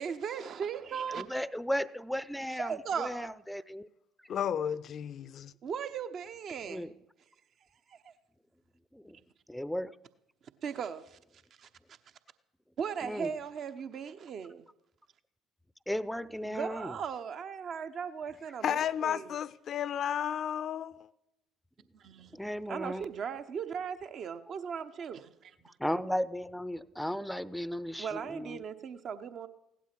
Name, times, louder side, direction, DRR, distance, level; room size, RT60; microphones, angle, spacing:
voice 1, 0.0-1.2 2.5-3.3 5.6-6.8 7.9-8.1 10.6-11.2 11.6-11.7 12.8-14.6 16.4-19.3 21.9-22.4 22.7-25.6 28.0-29.5, right 7 dB, 50° right, 1.0 m, -38 dB
voice 2, 1.1-3.9 6.7-6.9 8.9-9.2 9.5-9.9 13.0-13.3 15.9-16.9 22.3-23.1 25.8-28.6, equal, 5° left, 0.6 m, -35 dB
voice 3, 4.3-5.5 18.6-21.1, left 9 dB, 50° left, 0.5 m, -33 dB
16.5 x 11.5 x 6.0 m
figure-of-eight pair, 55°, 0 cm